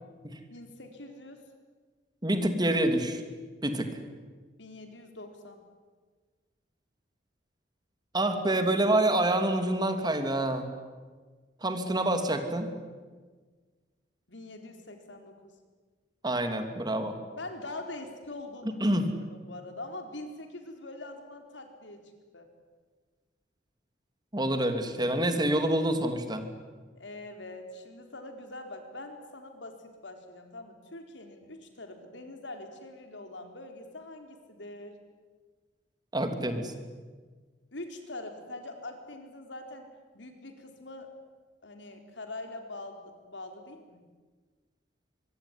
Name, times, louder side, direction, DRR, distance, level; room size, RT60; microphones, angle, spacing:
voice 1, 0.5-1.4 4.6-5.6 14.3-15.4 17.4-18.8 19.2-22.5 26.9-35.0 37.7-39.9 40.1-41.1 41.6-44.0, left 2 dB, 90° left, 6 dB, 4.1 m, -43 dB
voice 2, 2.2-3.2 3.6-4.0 8.1-10.7 11.6-12.7 16.2-17.2 18.8-19.1 24.3-26.5 36.1-36.7, right 1 dB, 25° right, 7 dB, 2.7 m, -27 dB
24.5 x 23.5 x 10.0 m, 1.4 s
head